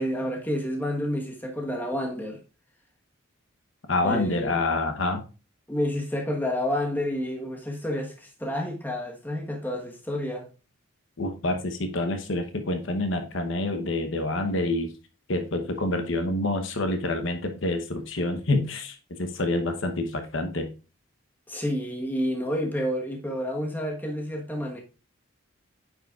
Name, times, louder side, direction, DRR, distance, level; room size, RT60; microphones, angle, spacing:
voice 1, 0.0-2.4 4.0-4.6 5.7-10.5 21.5-24.8, equal, 10° left, 1.3 m, -29 dB
voice 2, 3.9-5.2 11.2-14.9 15.3-20.7, left 2 dB, 65° left, 1.0 m, -27 dB
8.9 x 6.5 x 2.4 m
head